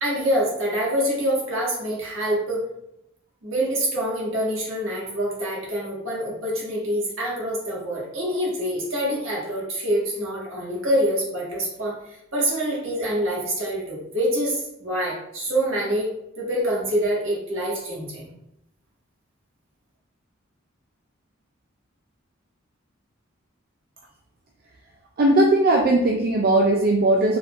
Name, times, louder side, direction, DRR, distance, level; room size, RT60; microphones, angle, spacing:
voice 1, 0.0-2.6 3.4-12.0 12.3-16.1 16.4-18.3, equal, 70° right, -4 dB, 1.6 m, -25 dB
voice 2, 25.2-27.4, right 1 dB, 45° right, 0 dB, 0.4 m, -18 dB
4.2 x 4.0 x 2.5 m, 0.81 s
head